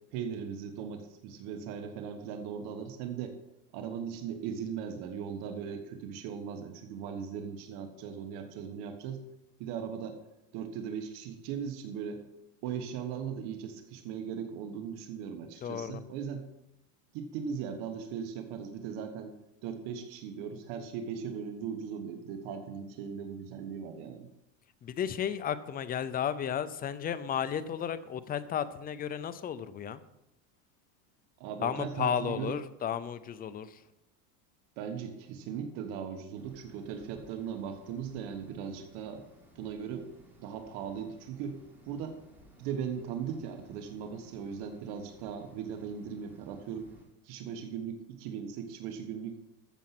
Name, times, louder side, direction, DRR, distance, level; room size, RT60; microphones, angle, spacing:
voice 1, 0.1-3.3 3.7-9.2 9.6-10.2 10.5-12.2 12.6-16.4 17.1-19.3 19.6-24.3 31.4-32.6 34.8-39.2 39.5-40.1 40.4-42.2 42.6-46.9 47.2-49.4, right 7 dB, 60° right, 6 dB, 1.5 m, -38 dB
voice 2, 15.6-16.0 24.8-30.0 31.6-33.8, left 8 dB, 20° left, 14 dB, 0.6 m, -33 dB
sound 1, 36.3-47.0, equal, 5° right, 4.1 m, -59 dB
14.0 x 7.1 x 6.0 m, 0.88 s
supercardioid pair, 140°, 45 cm